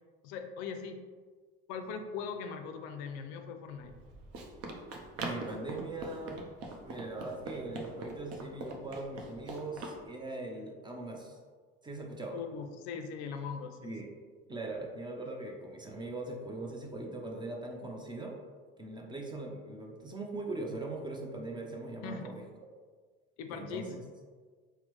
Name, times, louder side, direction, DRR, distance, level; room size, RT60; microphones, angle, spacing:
voice 1, 0.2-1.0 1.7-3.9 12.3-13.9 22.0-22.4 23.4-23.8, left 6 dB, 65° left, 6 dB, 0.4 m, -40 dB
Run, 3.8-10.0, right 2 dB, 55° right, 0.7 m, -42 dB
voice 2, 5.2-6.4 6.9-11.4 11.8-12.4 13.8-14.1 14.5-18.3 18.8-22.4 23.5-24.0, right 2 dB, 15° right, 1 dB, 0.6 m, -40 dB
4.2 x 2.1 x 3.0 m, 1.5 s
hypercardioid pair, 80°, 29 cm